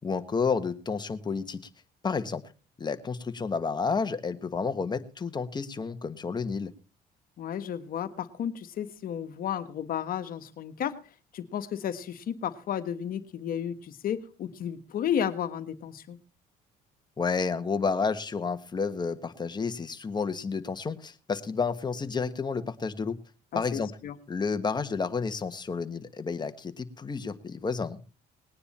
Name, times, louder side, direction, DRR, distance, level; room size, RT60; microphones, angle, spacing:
voice 1, 0.0-1.6 2.0-2.4 2.8-6.7 17.2-23.2 23.5-23.9 24.3-28.0, left 5 dB, 25° left, 9 dB, 1.4 m, -30 dB
voice 2, 7.4-11.0 11.3-16.2 23.5-24.2, left 9 dB, 60° left, 10 dB, 1.5 m, -33 dB
20.0 x 9.7 x 4.3 m, 0.36 s
cardioid pair, 110°, 17 cm